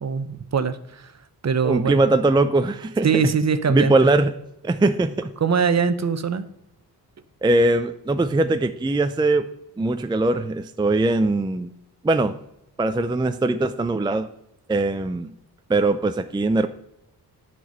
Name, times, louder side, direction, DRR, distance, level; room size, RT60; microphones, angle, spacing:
voice 1, 0.0-1.1 1.4-1.9 3.0-3.9 5.4-6.5, right 6 dB, 40° right, 11 dB, 0.8 m, -22 dB
voice 2, 1.6-3.1 3.7-4.3 4.6-5.3 7.4-9.5 9.8-11.7 12.0-12.4 12.8-14.3 14.7-15.3 15.7-16.7, right 2 dB, 10° right, 9 dB, 0.5 m, -21 dB
9.2 x 6.1 x 5.3 m, 0.80 s
cardioid pair, 70°, 40 cm